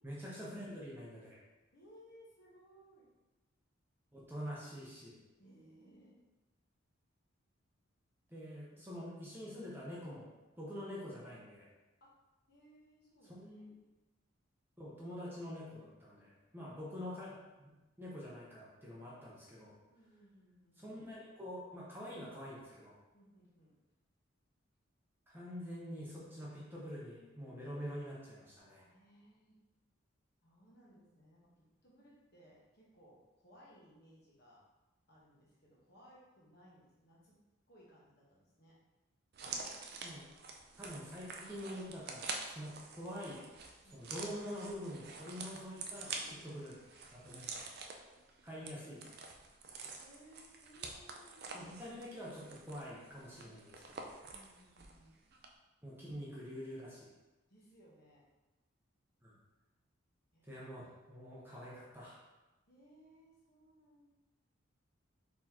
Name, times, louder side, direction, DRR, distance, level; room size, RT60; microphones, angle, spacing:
voice 1, 0.0-1.4 4.1-5.2 8.3-10.3 10.6-11.7 13.4-13.7 14.8-17.7 18.0-19.7 20.8-23.0 25.3-28.9 40.0-40.2 40.8-43.5 43.9-46.1 46.5-46.7 47.1-47.5 48.4-49.0 51.5-54.1 55.8-57.1 59.2-59.3 60.4-62.2, equal, 10° right, -6 dB, 0.7 m, -46 dB
voice 2, 1.7-3.1 5.4-6.2 12.0-12.1 12.5-13.6 16.6-17.0 19.9-21.0 23.1-23.8 28.8-29.6 30.4-34.6 35.1-37.4 37.7-38.7 43.8-44.3 46.0-46.6 47.6-47.9 50.0-51.7 53.4-53.6 54.3-55.2 57.5-58.2 60.3-60.6 62.7-64.1, equal, 50° left, -6 dB, 1.2 m, -62 dB
sound 1, 39.3-55.0 55.3-55.5, right 4 dB, 50° right, 0.4 m, -47 dB
4.2 x 3.6 x 2.9 m, 1.1 s
head